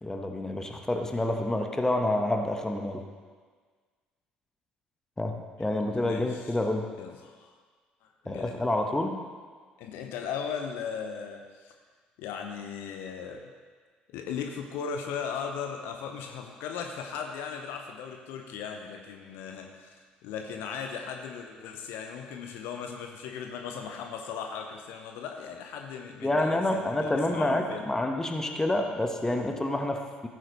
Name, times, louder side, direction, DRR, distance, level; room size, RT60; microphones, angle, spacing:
voice 1, 0.0-3.0 5.2-6.9 8.2-9.2 26.2-30.3, left 1 dB, 10° left, 4 dB, 1.2 m, -28 dB
voice 2, 5.9-6.6 7.0-7.5 8.0-8.6 9.8-11.7 12.2-13.5 14.1-27.9, left 6 dB, 60° left, 3 dB, 0.9 m, -37 dB
15.5 x 9.1 x 3.2 m, 1.5 s
figure-of-eight pair, 50°, 4 cm